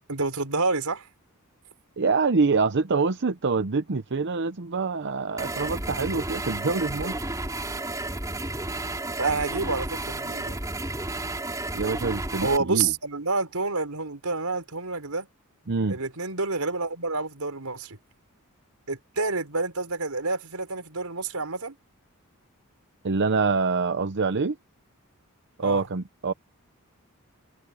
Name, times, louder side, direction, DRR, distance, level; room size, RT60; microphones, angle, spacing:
voice 1, 0.1-1.1 9.2-10.6 12.4-15.3 15.9-18.0 18.9-21.8 25.6-25.9, right 3 dB, 80° right, 4.8 m, -28 dB
voice 2, 2.0-7.1 11.7-12.9 15.7-16.0 23.0-24.6 25.6-26.3, right 4 dB, 55° right, 0.8 m, -25 dB
sound 1, 5.4-12.6, right 2 dB, 15° right, 3.5 m, -32 dB
open air
head